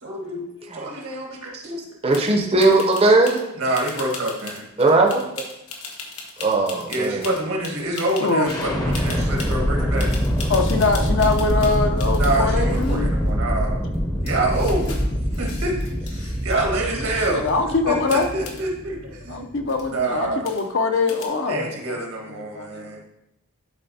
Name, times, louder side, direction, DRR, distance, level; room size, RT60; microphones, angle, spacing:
voice 1, 0.0-0.4 0.7-1.8 3.6-4.7 6.9-10.1 12.2-13.8 14.2-15.0 15.4-17.4 17.9-19.5 19.9-20.5 21.5-23.0, right 2 dB, 75° right, 0 dB, 1.6 m, -26 dB
voice 2, 2.0-3.4 4.8-5.3 6.4-7.3, right 2 dB, 25° right, 2 dB, 0.7 m, -18 dB
sound 1, 2.1-2.3 2.6-3.4 3.7-8.7 8.9-9.6 10.0-12.4 12.7-13.3 13.9-14.0 14.2-16.6 16.9-17.5 18.1-18.6 19.3-19.4 19.6-19.9 20.4-20.8 21.1-21.3, left 4 dB, 80° left, 1.2 m, -38 dB
voice 3, 8.2-8.6 10.5-13.1 17.3-18.3 19.3-23.0, left 3 dB, 55° left, 5 dB, 0.6 m, -23 dB
sound 2, 8.5-20.3, equal, 15° left, 0.7 m, -24 dB
11.5 x 4.2 x 2.8 m, 0.89 s
head